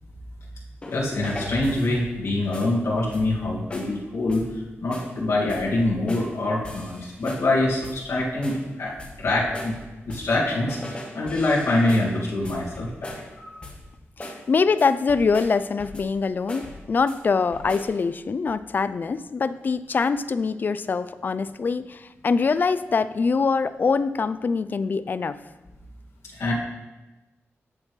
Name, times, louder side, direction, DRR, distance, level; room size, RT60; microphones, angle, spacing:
sound 1, 0.8-2.2 2.5-2.8 3.1-3.4 3.7-4.0 4.3-4.6 4.9-5.2 5.5-6.4 6.6-7.5 7.8-8.1 8.4-10.4 10.7-13.3 13.6-13.9 14.2-14.5 14.8-16.2 16.5-17.2 17.5-18.0, left 1 dB, 20° left, 1.1 m, -40 dB
voice 1, 0.9-4.5 4.8-9.8 10.1-10.8 11.1-13.5 26.3-26.5, left 2 dB, 75° left, -5 dB, 2.0 m, -25 dB
voice 2, 14.2-25.4, left 4 dB, 40° left, 14 dB, 0.3 m, -24 dB
13.0 x 6.6 x 3.2 m, 1.1 s
wide cardioid pair, 175°, 5 cm